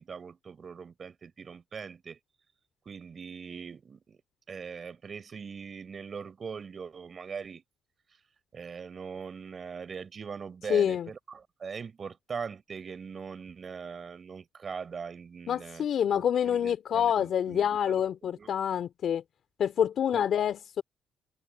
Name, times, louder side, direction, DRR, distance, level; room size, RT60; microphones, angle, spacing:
voice 1, 0.0-2.2 2.8-4.2 4.5-7.6 8.5-15.9 16.1-18.5 20.1-20.2, right 6 dB, 45° right, 6.0 m, -41 dB
voice 2, 10.7-11.1 15.5-19.2 19.6-20.8, left 9 dB, 60° left, 2.4 m, -27 dB
supercardioid pair, 65°, 0 cm